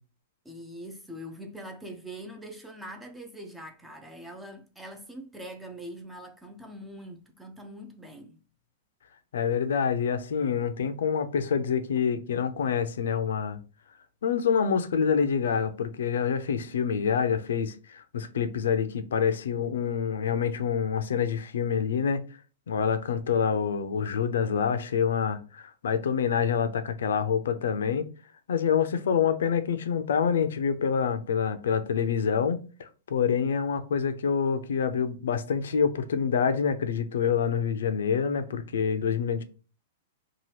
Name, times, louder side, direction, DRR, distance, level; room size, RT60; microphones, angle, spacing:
voice 1, 0.4-8.4, equal, 5° right, 0.3 m, -43 dB
voice 2, 9.3-13.6 14.2-22.2 22.7-28.1 28.5-39.4, left 7 dB, 85° left, 0.4 m, -27 dB
2.9 x 2.2 x 3.1 m
supercardioid pair, 165°, 0 cm